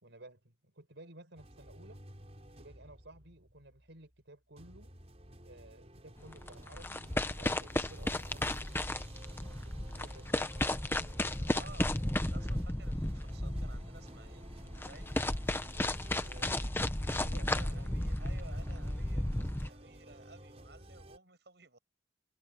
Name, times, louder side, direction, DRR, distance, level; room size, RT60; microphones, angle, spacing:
voice 1, 0.0-2.0 2.6-4.9 5.4-8.9 9.2-10.4 11.0-11.2 16.2-16.6 17.1-18.1, right 1 dB, 85° right, 4.6 m, -55 dB
sound 1, 1.4-4.1 4.6-21.2, equal, 35° right, 5.2 m, -52 dB
sound 2, 6.2-19.7, left 1 dB, 10° left, 0.9 m, -34 dB
voice 2, 11.5-11.9 12.2-15.1 17.5-21.8, right 3 dB, 65° right, 7.9 m, -55 dB
head